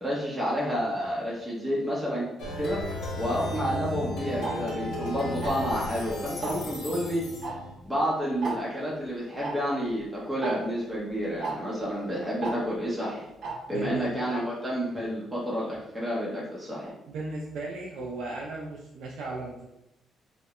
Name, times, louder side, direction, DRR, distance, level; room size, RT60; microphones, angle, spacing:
voice 1, 0.0-2.3 2.6-2.8 3.2-7.3 7.8-13.3 13.7-16.9, equal, 10° right, -6 dB, 0.6 m, -30 dB
Plucked string instrument, 2.4-7.7, left 1 dB, 75° left, 0.8 m, -35 dB
Tick-tock, 4.4-4.5 5.4-5.7 6.4-6.7 7.4-7.5 7.8-7.9 8.4-8.5 9.4-9.5 10.4-10.5 11.4-11.5 12.4-12.5 13.4-13.5, right 4 dB, 60° right, 0.7 m, -32 dB
voice 2, 13.7-14.2 17.1-19.7, right 2 dB, 80° right, -2 dB, 0.3 m, -36 dB
2.3 x 2.0 x 2.9 m, 0.86 s
cardioid pair, 90°, 0 cm